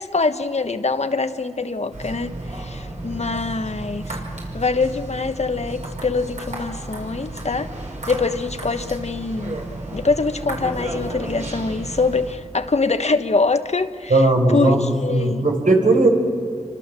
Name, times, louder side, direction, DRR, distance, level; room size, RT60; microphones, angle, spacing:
voice 1, 0.0-4.2 4.5-7.7 8.1-9.6 9.9-14.3 14.5-15.4, left 3 dB, 55° left, 9 dB, 1.2 m, -24 dB
sound 1, 1.9-12.4, right 1 dB, 65° right, 5.7 m, -33 dB
voice 2, 14.1-16.1, right 2 dB, 90° right, 2 dB, 4.6 m, -17 dB
28.5 x 25.0 x 7.5 m, 2.1 s
wide cardioid pair, 65°, 13 cm